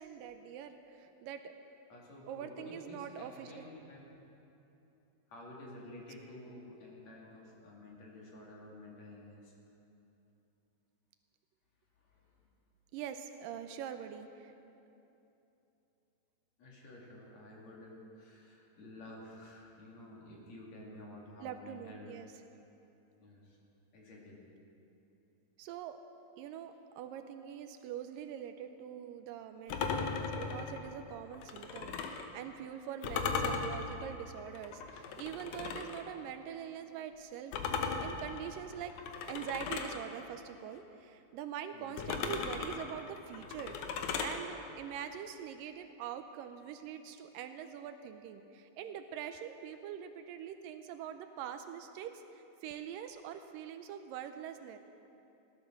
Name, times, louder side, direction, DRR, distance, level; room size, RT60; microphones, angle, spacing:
voice 1, 0.0-1.5 2.3-3.7 12.9-14.5 21.4-22.3 25.6-26.0 26.4-38.9 39.3-43.8 44.2-54.8, right 9 dB, 80° right, 8 dB, 2.2 m, -44 dB
voice 2, 1.9-4.0 5.3-9.5 12.0-12.2 16.6-22.1 23.2-23.6 23.9-24.4 41.7-42.0, left 1 dB, 50° left, -3 dB, 3.4 m, -51 dB
sound 1, 29.7-32.3 33.0-36.0 37.5-40.0 42.0-44.4, left 5 dB, 70° left, 2.2 m, -37 dB
17.0 x 12.5 x 6.5 m, 2.9 s
omnidirectional pair, 4.1 m